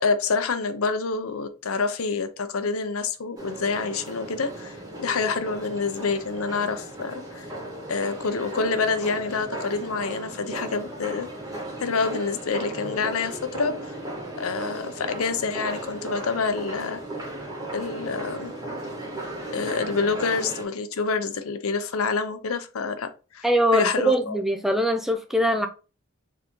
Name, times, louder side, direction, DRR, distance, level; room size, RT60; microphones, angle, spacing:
voice 1, 0.0-7.5 7.9-11.3 11.8-13.9 14.4-17.0 17.7-18.5 19.5-23.4 23.7-24.4, left 4 dB, 90° left, 0.6 m, -27 dB
sound 1, 3.4-20.6, right 1 dB, 20° right, 1.9 m, -36 dB
voice 2, 23.4-25.7, equal, ahead, 0.4 m, -22 dB
4.7 x 3.5 x 3.1 m
head